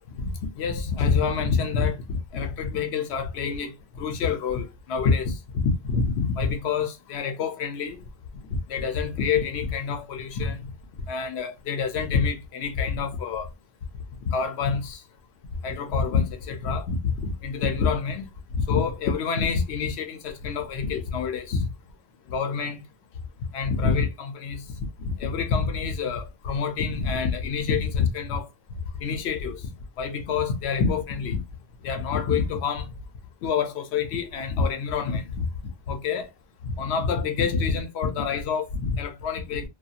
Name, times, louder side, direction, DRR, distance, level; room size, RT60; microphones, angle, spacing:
voice 1, 0.6-3.7 4.0-8.0 8.5-10.7 11.1-13.5 14.3-15.0 15.6-18.3 18.5-21.6 22.3-22.8 23.5-24.6 25.0-28.5 29.0-29.7 30.0-31.4 31.8-32.9 33.4-35.5 35.9-36.3 36.8-39.7, left 5 dB, 90° left, 0.8 m, -27 dB
2.4 x 2.2 x 2.7 m
omnidirectional pair, 1.1 m